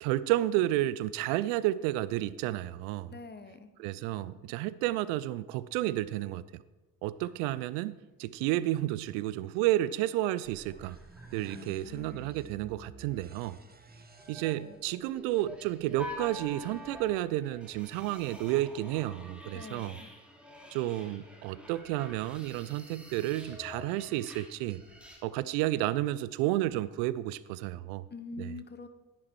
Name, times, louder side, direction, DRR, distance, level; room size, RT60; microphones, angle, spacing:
voice 1, 0.0-3.1 3.8-6.6 7.0-11.0 11.3-13.6 14.3-20.0 20.7-24.8 25.2-28.0 28.4-28.5, right 15 dB, 65° right, 18 dB, 0.5 m, -31 dB
voice 2, 3.1-3.7 11.5-12.3 19.5-20.1 28.1-28.9, left 3 dB, 25° left, 9 dB, 1.2 m, -45 dB
sound 1, 9.0-9.4 9.7-9.8 10.1-11.9 13.9-25.2, left 1 dB, 5° right, 3.1 m, -48 dB
sound 2, 10.4-18.3, right 3 dB, 20° right, 1.3 m, -54 dB
12.0 x 10.0 x 4.6 m, 1.1 s
figure-of-eight pair, 45°, 43 cm